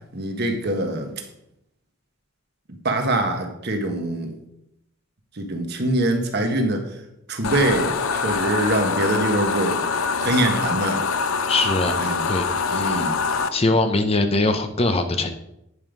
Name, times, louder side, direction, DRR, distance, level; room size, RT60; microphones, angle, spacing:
voice 1, 0.1-1.1 2.8-4.4 5.4-6.8 7.3-9.8 10.2-11.0 12.0-12.2 12.7-13.2, right 1 dB, 50° right, 4 dB, 1.4 m, -23 dB
sound 1, 7.4-13.5, left 5 dB, 85° left, 0.6 m, -24 dB
voice 2, 11.5-12.5 12.7-13.1 13.5-15.3, left 2 dB, 30° left, 7 dB, 0.7 m, -22 dB
10.0 x 5.5 x 5.2 m, 0.81 s
head